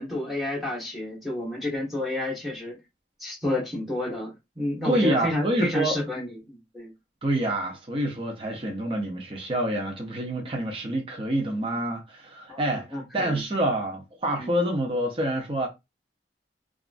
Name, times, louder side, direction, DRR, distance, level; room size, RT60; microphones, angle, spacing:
voice 1, 0.0-2.8 3.2-6.9 12.5-13.4 14.3-14.5, left 1 dB, ahead, 1.1 m, -30 dB
voice 2, 4.8-6.0 7.2-15.7, right 1 dB, 30° right, 0.5 m, -27 dB
2.9 x 2.4 x 2.4 m
head